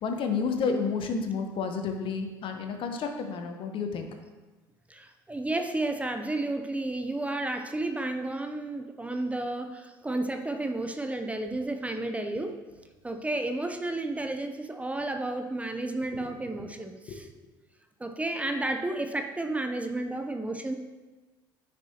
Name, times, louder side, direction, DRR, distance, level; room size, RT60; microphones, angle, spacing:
voice 1, 0.0-4.1, left 5 dB, 50° left, 5 dB, 1.0 m, -30 dB
voice 2, 4.9-12.5 13.0-17.3 18.0-20.7, right 2 dB, 10° right, 6 dB, 0.6 m, -32 dB
9.8 x 6.2 x 2.9 m, 1.2 s
hypercardioid pair, 65°, 11 cm